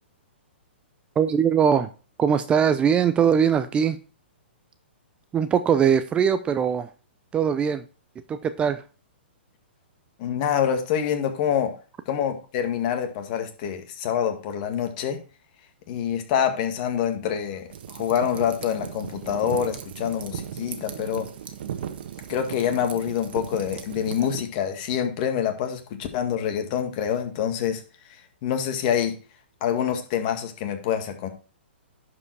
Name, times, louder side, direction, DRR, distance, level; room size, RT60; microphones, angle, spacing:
voice 1, 1.2-1.9 2.2-4.0 5.3-6.9 7.3-7.8 8.3-8.8, right 7 dB, 15° right, 11 dB, 0.5 m, -21 dB
voice 2, 10.2-11.8 12.1-15.2 15.9-21.3 22.3-27.8 28.1-29.2 29.6-31.3, left 9 dB, 45° left, 6 dB, 1.9 m, -26 dB
sound 1, 17.7-24.4, right 9 dB, 60° right, 1.4 m, -37 dB
11.0 x 4.9 x 4.8 m, 0.35 s
hypercardioid pair, 130°, 6 cm